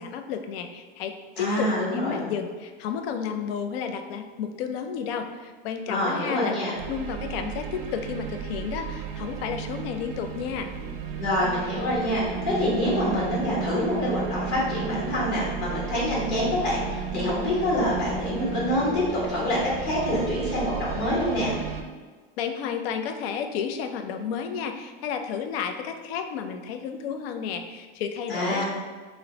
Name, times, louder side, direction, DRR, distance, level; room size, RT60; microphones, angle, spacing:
voice 1, 0.0-10.7 22.4-28.6, left 7 dB, 70° left, 6 dB, 0.5 m, -32 dB
voice 2, 1.4-2.3 5.9-6.7 11.2-21.6 28.3-28.7, left 1 dB, 45° left, -7 dB, 1.4 m, -26 dB
sound 1, 6.8-21.8, right 6 dB, 45° right, 0.5 m, -33 dB
3.1 x 2.0 x 3.7 m, 1.4 s
hypercardioid pair, 100°, 32 cm